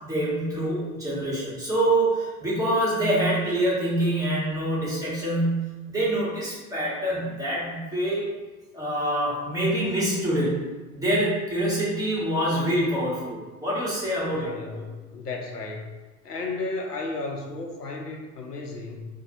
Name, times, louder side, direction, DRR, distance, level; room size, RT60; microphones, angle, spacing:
voice 1, 0.0-8.3 8.7-10.6 10.9-14.8, right 1 dB, 5° right, -9 dB, 1.4 m, -25 dB
voice 2, 14.3-15.9 16.2-19.1, left 3 dB, 90° left, 1 dB, 0.6 m, -34 dB
3.8 x 2.2 x 3.1 m, 1.2 s
figure-of-eight pair, 80°, 46 cm